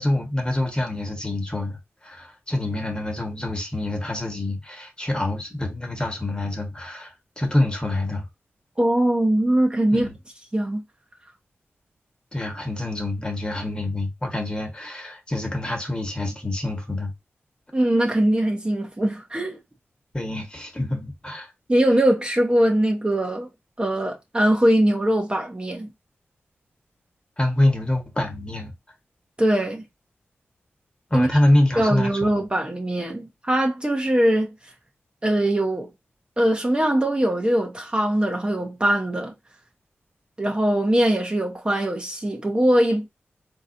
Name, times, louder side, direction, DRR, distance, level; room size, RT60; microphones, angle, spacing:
voice 1, 0.0-8.3 9.9-10.2 12.3-17.1 20.1-21.5 27.4-28.7 31.1-32.4, left 1 dB, 20° left, 1.3 m, -26 dB
voice 2, 8.8-10.1 10.5-10.8 17.7-19.6 21.7-23.5 23.8-25.9 29.4-29.8 31.1-31.3 31.8-34.5 35.2-35.9 36.4-39.3 40.4-43.1, right 1 dB, 20° right, 0.8 m, -21 dB
3.9 x 2.8 x 2.6 m
cardioid pair, 65°, 4 cm